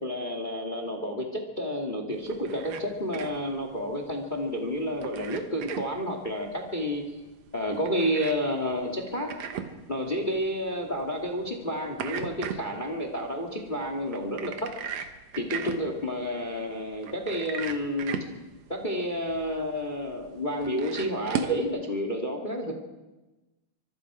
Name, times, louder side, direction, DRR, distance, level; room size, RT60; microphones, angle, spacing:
voice 1, 0.0-7.0 7.5-9.3 9.9-14.7 15.4-18.2 18.7-22.7, equal, 25° left, 3 dB, 1.0 m, -30 dB
sound 1, 2.1-21.6, right 7 dB, 65° right, 1.7 m, -39 dB
25.0 x 23.0 x 4.9 m, 1.1 s
omnidirectional pair, 4.6 m